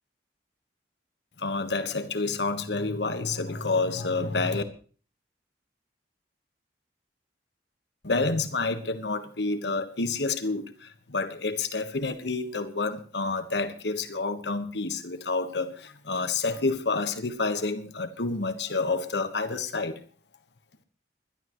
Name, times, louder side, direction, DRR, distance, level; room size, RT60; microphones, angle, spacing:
voice 1, 1.4-4.6 8.0-20.0, left 3 dB, 75° left, 1.4 m, -29 dB
21.0 x 12.0 x 3.1 m
head